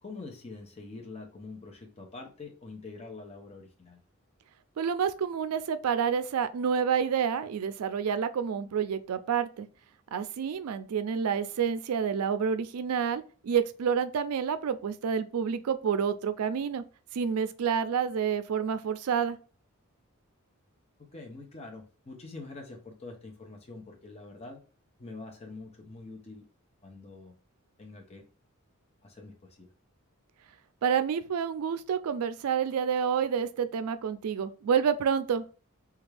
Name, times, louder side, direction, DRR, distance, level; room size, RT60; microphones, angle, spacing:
voice 1, 0.0-4.0 21.1-24.6 25.0-26.4 26.8-27.4 27.8-28.2 29.0-29.7, left 3 dB, 30° left, 0.6 m, -45 dB
voice 2, 4.8-9.7 10.1-16.8 17.1-19.4 30.8-35.4, right 7 dB, 85° right, 0.4 m, -28 dB
3.4 x 2.3 x 3.2 m
head